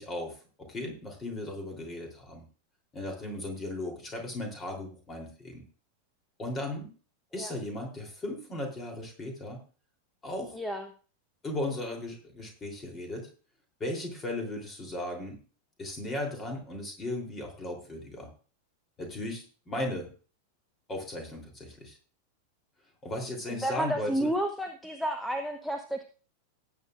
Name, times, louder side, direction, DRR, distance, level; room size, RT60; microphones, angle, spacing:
voice 1, 0.0-2.4 2.9-5.7 6.4-6.9 7.3-9.6 10.2-10.6 11.4-13.3 13.8-15.4 15.8-18.3 19.0-20.1 20.9-22.0 23.0-24.3, left 1 dB, 20° left, 2 dB, 3.4 m, -36 dB
voice 2, 10.5-10.9 23.5-26.0, right 1 dB, ahead, 6 dB, 1.0 m, -31 dB
18.0 x 8.4 x 2.5 m, 0.38 s
figure-of-eight pair, 90°, 0 cm